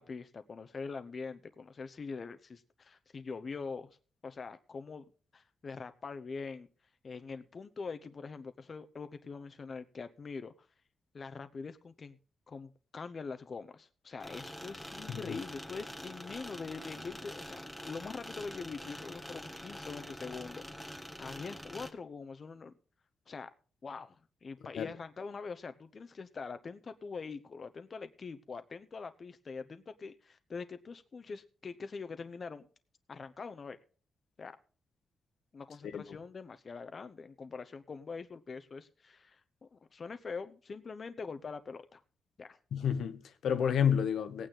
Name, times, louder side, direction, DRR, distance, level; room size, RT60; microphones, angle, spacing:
voice 1, 0.0-4.0 4.2-5.0 5.3-6.7 7.0-10.7 11.1-12.2 12.5-22.7 23.3-23.5 23.8-32.7 33.1-33.8 34.4-34.6 35.5-42.0 42.4-42.6, left 4 dB, 40° left, 0.8 m, -44 dB
sound 1, 14.2-21.9, equal, ahead, 1.5 m, -45 dB
voice 2, 15.1-15.4 24.8-24.9 35.9-36.0 42.7-44.5, left 8 dB, 80° left, 1.1 m, -30 dB
17.5 x 9.0 x 3.8 m
cardioid pair, 115°, 0 cm